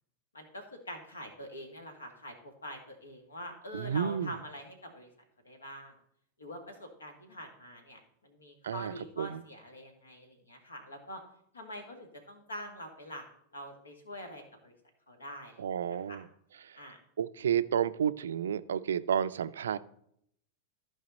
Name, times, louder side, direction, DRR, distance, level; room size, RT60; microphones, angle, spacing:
voice 1, 0.3-5.1 5.4-5.9 6.4-11.2 11.5-13.2 13.5-14.7 15.1-15.6 16.1-16.2 16.8-17.0, equal, 75° left, 5 dB, 1.8 m, -45 dB
voice 2, 3.7-4.3 8.6-9.4 15.6-16.3 16.6-16.8 17.2-19.8, right 8 dB, 65° right, 15 dB, 0.4 m, -31 dB
14.0 x 5.0 x 4.0 m, 0.71 s
figure-of-eight pair, 90°, 0 cm